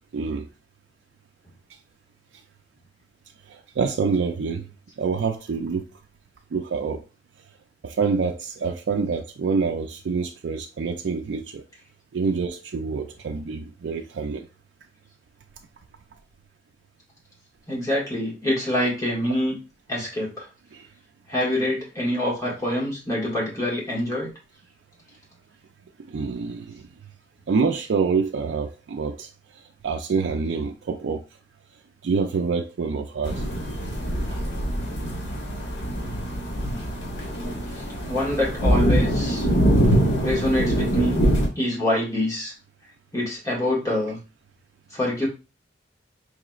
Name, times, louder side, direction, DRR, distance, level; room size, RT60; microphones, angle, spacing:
voice 1, 0.1-0.5 3.5-4.7 5.0-5.9 6.5-7.0 7.8-11.6 12.1-14.5 20.7-20.9 26.1-26.9 27.5-29.3 29.8-31.2 32.0-33.4, right 5 dB, 80° right, 0.4 m, -26 dB
voice 2, 17.7-19.5 19.9-20.5 21.3-24.3 34.3-34.4 37.7-39.5 40.2-41.2 41.6-42.5 43.1-44.2 44.9-45.3, left 1 dB, 20° left, 1.8 m, -26 dB
sound 1, 33.2-41.5, right 1 dB, 85° left, 1.2 m, -23 dB
4.7 x 3.0 x 2.4 m
head